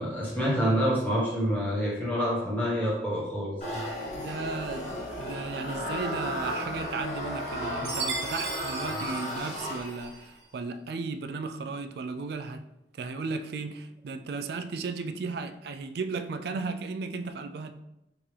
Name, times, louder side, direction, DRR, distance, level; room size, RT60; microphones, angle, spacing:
voice 1, 0.0-3.8, equal, 10° left, 1.1 m, -27 dB
sound 1, 3.6-10.2, equal, 40° left, 1.4 m, -34 dB
voice 2, 4.1-12.7 12.9-17.7, right 4 dB, 60° right, 0.3 m, -35 dB
Chime, 7.8-10.2, right 4 dB, 85° right, 0.8 m, -36 dB
4.5 x 3.5 x 3.3 m
head